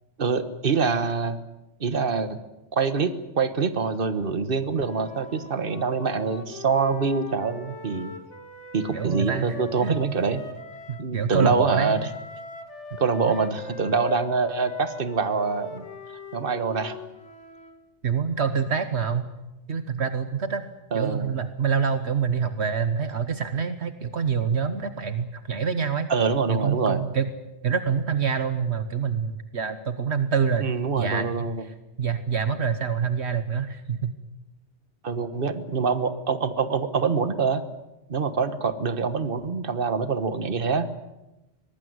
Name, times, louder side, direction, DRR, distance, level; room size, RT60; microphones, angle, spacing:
voice 1, 0.2-1.4 1.8-2.4 2.7-8.1 8.7-10.4 11.0-12.0 13.0-15.8 16.3-17.0 20.9-21.3 26.1-27.0 30.6-31.6 35.0-37.6 38.1-40.9, right 5 dB, 50° right, 11 dB, 1.6 m, -25 dB
Wind instrument woodwind instrument, 4.7-11.1 11.8-17.8, left 3 dB, 80° left, 2.7 m, -41 dB
voice 2, 8.9-10.0 10.9-12.1 13.3-13.4 18.0-19.3 19.7-20.6 20.9-26.1 26.5-27.3 27.6-30.7 30.9-34.1, right 6 dB, 70° right, 10 dB, 1.5 m, -26 dB
24.0 x 19.0 x 9.5 m, 0.99 s
omnidirectional pair, 1.2 m